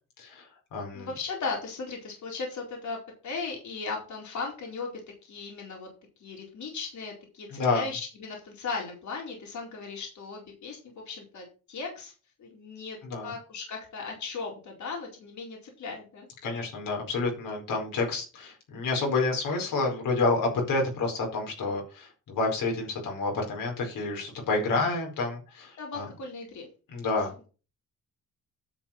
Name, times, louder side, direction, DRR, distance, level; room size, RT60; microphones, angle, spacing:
voice 1, 0.2-1.1 7.5-7.8 13.0-13.3 16.4-26.1 26.9-27.5, left 3 dB, 80° left, 1 dB, 4.9 m, -29 dB
voice 2, 0.9-5.9 6.2-12.1 12.4-13.0 13.2-16.3 24.7-24.9 25.8-26.7, left 4 dB, 60° left, 0 dB, 4.5 m, -37 dB
10.5 x 6.2 x 5.8 m, 0.34 s
cardioid pair, 125°, 33 cm